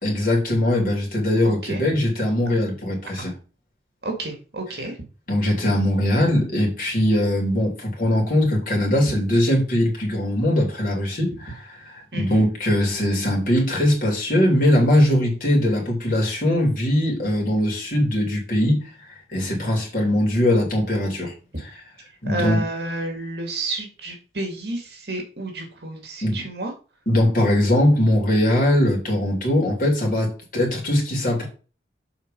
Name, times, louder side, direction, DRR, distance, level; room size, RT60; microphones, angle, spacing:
voice 1, 0.0-3.3 5.3-18.8 19.3-21.3 22.2-22.6 26.2-26.5 27.1-31.5, left 1 dB, 50° left, 3.2 m, -21 dB
voice 2, 1.4-1.8 3.2-3.3 4.0-5.0 12.1-12.4 22.2-26.7, right 2 dB, 65° right, 2.0 m, -30 dB
7.3 x 4.4 x 5.2 m
head